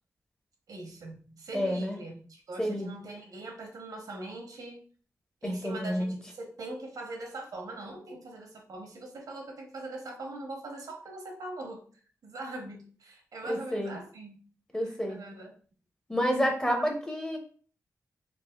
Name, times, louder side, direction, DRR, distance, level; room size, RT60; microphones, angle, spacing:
voice 1, 0.7-4.8 5.4-11.8 12.2-14.4 14.8-15.5, right 2 dB, 85° right, 2 dB, 0.8 m, -42 dB
voice 2, 1.5-2.0 2.6-2.9 5.4-6.2 13.4-14.0 14.7-15.2 16.1-17.4, equal, 10° left, 3 dB, 0.6 m, -29 dB
4.0 x 2.4 x 2.3 m, 0.42 s
wide cardioid pair, 120°, 6 cm